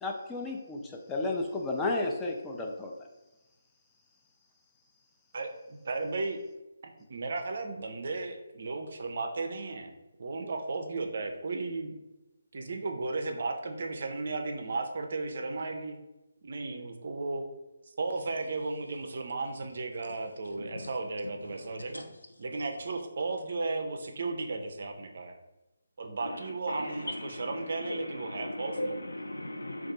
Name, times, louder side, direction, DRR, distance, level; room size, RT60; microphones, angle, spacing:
voice 1, 0.0-2.9, left 2 dB, 10° left, 0 dB, 0.4 m, -32 dB
voice 2, 5.3-6.4 7.1-9.9 10.2-12.0 12.5-16.0 16.4-17.4 18.0-22.0 22.4-25.3 26.0-28.9, right 3 dB, 55° right, 5 dB, 0.4 m, -35 dB
voice 3, 20.6-20.9 21.5-21.6 21.9-22.0 26.2-26.4 26.7-29.9, left 1 dB, 80° left, 3 dB, 0.5 m, -38 dB
2.5 x 2.3 x 3.9 m, 1.0 s
figure-of-eight pair, 150°, 0 cm